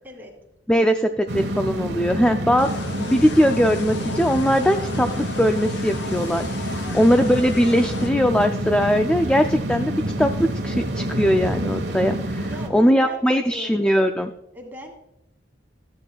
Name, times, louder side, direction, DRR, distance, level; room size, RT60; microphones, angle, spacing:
voice 1, 0.7-2.7 3.0-10.3 10.6-12.5 12.7-14.3, equal, 5° left, 6 dB, 0.3 m, -20 dB
sound 1, 1.3-12.7, right 1 dB, 70° right, 1.3 m, -28 dB
sound 2, 2.6-8.1, left 5 dB, 70° left, 0.4 m, -36 dB
voice 2, 6.8-7.2 12.4-13.9 14.5-14.9, equal, 10° right, -1 dB, 2.2 m, -40 dB
13.0 x 8.6 x 2.3 m, 0.82 s
head